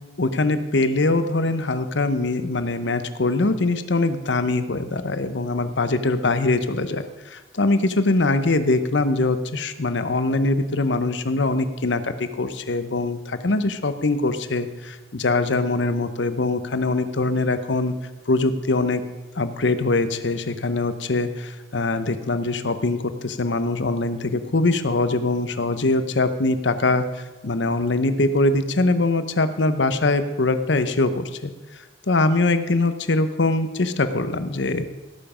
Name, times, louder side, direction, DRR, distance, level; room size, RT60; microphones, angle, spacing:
voice 1, 0.2-17.9 18.3-19.0 19.3-34.9, left 2 dB, 70° left, 10 dB, 0.9 m, -23 dB
17.0 x 7.2 x 5.0 m, 1.2 s
head